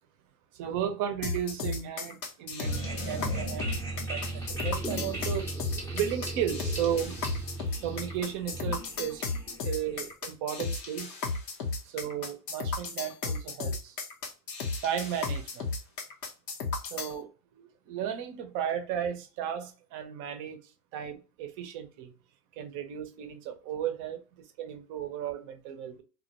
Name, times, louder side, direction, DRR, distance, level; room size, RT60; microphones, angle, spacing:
voice 1, 0.5-7.2 7.7-11.1 11.8-14.0 14.8-15.7 16.9-20.6 20.9-22.1 22.5-24.2 24.6-26.0, right 9 dB, 40° right, 0.5 m, -35 dB
sound 1, 1.2-17.1, left 4 dB, 85° left, 0.9 m, -34 dB
sound 2, 2.6-10.1, right 2 dB, 5° left, 0.6 m, -37 dB
2.3 x 2.1 x 2.8 m
hypercardioid pair, 105°, 48 cm